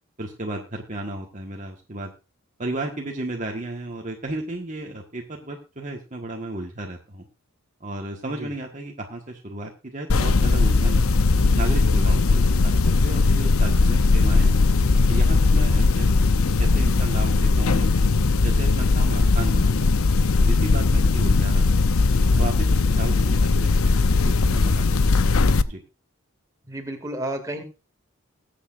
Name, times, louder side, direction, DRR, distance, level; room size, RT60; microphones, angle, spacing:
voice 1, 0.2-2.1 2.6-7.3 7.8-11.1 11.5-14.6 15.1-16.1 16.3-18.1 18.4-20.0 20.4-22.0 22.3-23.9 24.2-25.1 25.7-25.8, right 2 dB, 35° right, 1 dB, 1.6 m, -34 dB
sound 1, 10.1-25.6, left 3 dB, 85° left, 0.7 m, -19 dB
voice 2, 26.6-27.6, right 1 dB, 15° right, 3 dB, 2.4 m, -32 dB
21.0 x 8.4 x 2.6 m, 0.31 s
head